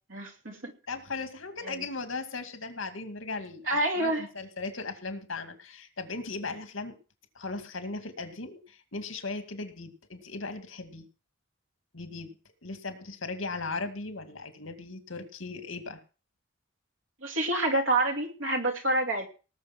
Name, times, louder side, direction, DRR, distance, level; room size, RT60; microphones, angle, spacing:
voice 1, 0.1-0.7 1.6-1.8 3.7-4.3 17.2-19.3, right 2 dB, 75° right, 4 dB, 2.7 m, -28 dB
voice 2, 0.9-3.7 3.9-6.9 7.4-11.1 11.9-12.4 12.6-16.0, left 3 dB, 80° left, 7 dB, 2.2 m, -37 dB
18.5 x 6.4 x 6.0 m, 0.36 s
head